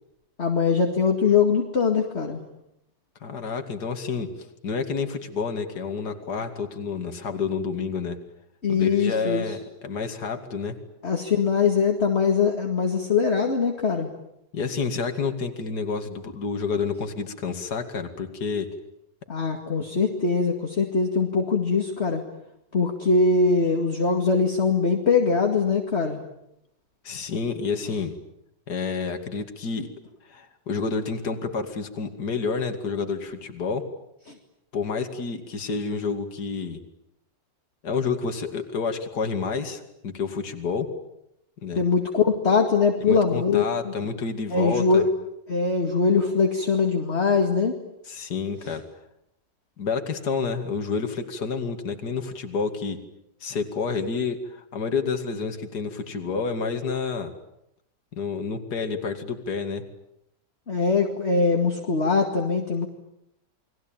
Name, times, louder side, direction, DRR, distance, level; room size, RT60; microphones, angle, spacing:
voice 1, 0.4-2.4 8.6-9.4 11.0-14.1 19.3-22.2 22.7-26.2 41.8-43.6 44.5-45.0 45.5-47.7 60.7-62.9, left 5 dB, 35° left, 3 dB, 2.4 m, -22 dB
voice 2, 3.2-4.3 4.6-8.2 8.7-9.6 9.8-10.8 14.5-18.7 27.0-28.1 28.7-29.9 30.3-33.8 34.7-36.8 37.8-40.9 41.6-41.8 43.1-45.0 48.0-48.8 49.8-53.0 53.4-57.3 58.1-59.8, left 5 dB, 60° left, 6 dB, 2.8 m, -29 dB
30.0 x 22.0 x 9.0 m, 0.81 s
omnidirectional pair, 1.9 m